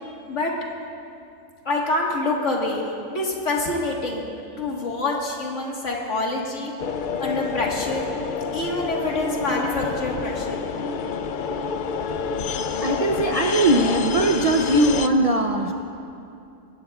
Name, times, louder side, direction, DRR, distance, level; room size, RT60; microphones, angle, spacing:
voice 1, 0.0-0.5 1.7-4.2 4.6-6.7 7.2-8.1 8.5-10.6, left 2 dB, 60° left, -1 dB, 1.9 m, -26 dB
sound 1, 6.8-15.1, left 5 dB, 80° left, 0.4 m, -28 dB
voice 2, 12.8-15.7, right 1 dB, 40° right, 1 dB, 0.5 m, -20 dB
20.0 x 16.5 x 2.4 m, 2.5 s
omnidirectional pair, 1.4 m